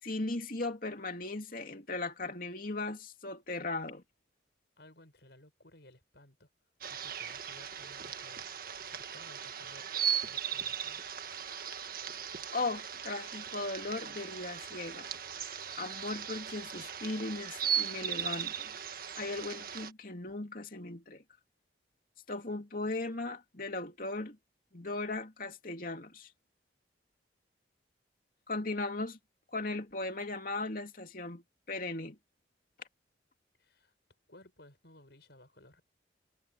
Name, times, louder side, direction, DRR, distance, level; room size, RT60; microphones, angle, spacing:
voice 1, 0.0-4.0 12.5-15.1 15.8-18.7 19.2-21.2 22.3-24.4 24.7-26.3 28.5-29.2 29.5-32.2, left 2 dB, 50° left, 2.8 m, -37 dB
voice 2, 4.8-8.5 8.8-9.9 10.3-11.1 33.6-35.8, left 1 dB, 65° left, 6.4 m, -58 dB
sound 1, 6.8-19.9, right 8 dB, 50° right, 1.7 m, -38 dB
head